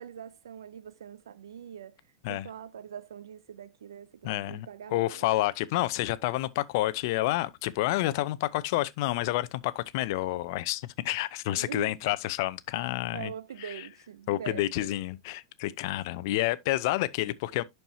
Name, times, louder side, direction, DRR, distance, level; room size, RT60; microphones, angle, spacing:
voice 1, 0.0-2.0 2.3-5.3 11.5-11.9 13.1-14.9, right 8 dB, 85° right, 0.5 m, -43 dB
voice 2, 4.2-13.3 13.6-13.8 14.3-17.6, left 16 dB, 60° left, 0.6 m, -29 dB
11.0 x 4.6 x 2.7 m
hypercardioid pair, 110°, 2 cm